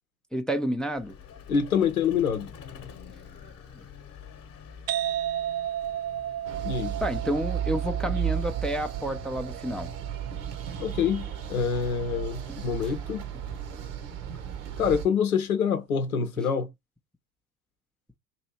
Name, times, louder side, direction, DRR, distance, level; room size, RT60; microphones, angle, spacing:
voice 1, 0.3-1.1 7.0-9.9 12.5-12.9, equal, ahead, 0.4 m, -30 dB
Vehicle, 0.9-7.3, left 7 dB, 35° left, 1.0 m, -47 dB
voice 2, 1.5-2.5 6.6-7.0 10.8-13.2 14.8-16.7, left 6 dB, 85° left, 0.7 m, -26 dB
sound 1, 4.9-12.3, right 11 dB, 75° right, 0.5 m, -35 dB
sound 2, 6.5-15.1, right 9 dB, 60° right, 1.0 m, -34 dB
3.0 x 2.7 x 4.2 m
figure-of-eight pair, 70°, 42 cm